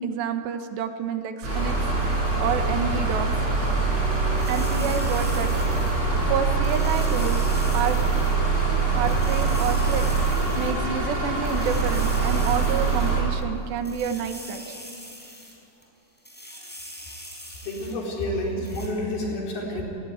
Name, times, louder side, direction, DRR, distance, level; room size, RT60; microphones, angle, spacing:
voice 1, 0.0-1.8 2.1-3.3 4.5-5.5 6.1-7.4 7.7-8.0 8.9-10.1 10.6-14.8 19.7-19.8, right 7 dB, 85° right, 7 dB, 3.5 m, -29 dB
sound 1, 1.4-13.2, right 4 dB, 25° right, 6.8 m, -23 dB
sound 2, 4.4-6.2 6.6-8.3 8.6-8.7 9.0-10.7 11.0-11.1 11.4-13.4 13.8-15.5 15.8-15.9 16.2-17.9 18.2-18.3 18.6-18.9, equal, ahead, 4.9 m, -42 dB
voice 2, 17.6-19.8, left 1 dB, 65° left, -2 dB, 6.2 m, -29 dB
27.5 x 19.0 x 9.8 m, 2.8 s
omnidirectional pair, 4.9 m